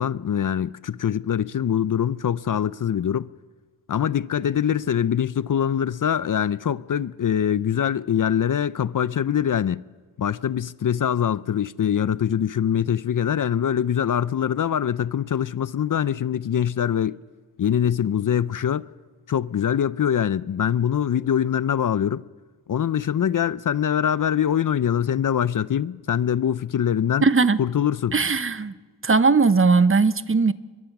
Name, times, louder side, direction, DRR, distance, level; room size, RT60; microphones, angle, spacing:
voice 1, 0.0-3.3 3.9-9.8 10.2-17.2 17.6-18.9 19.3-22.2 22.7-27.3 27.6-28.1, left 9 dB, 50° left, 0.6 m, -23 dB
voice 2, 27.2-27.6 28.1-28.7 29.0-30.5, right 4 dB, 30° right, 0.8 m, -18 dB
23.0 x 22.0 x 6.0 m
cardioid pair, 70°, 40 cm